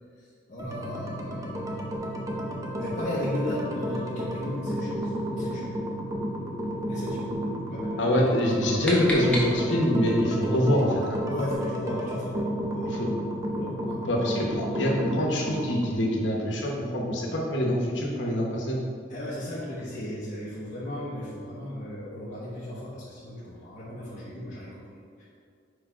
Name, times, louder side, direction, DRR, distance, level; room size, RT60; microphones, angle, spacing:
voice 1, 0.2-2.0 2.8-5.8 6.9-7.3 7.7-8.1 11.3-13.0 13.7-14.1 19.1-24.8 25.2-25.3, left 1 dB, 45° left, -8 dB, 0.9 m, -35 dB
sound 1, 0.6-15.9, equal, 20° right, 0.6 m, -32 dB
voice 2, 8.0-11.2 12.8-13.1 13.6-13.7 14.0-18.8, equal, 85° left, -1 dB, 0.9 m, -25 dB
sound 2, 8.4-10.0, equal, 5° left, 1.0 m, -33 dB
4.8 x 4.7 x 4.3 m, 2.2 s
head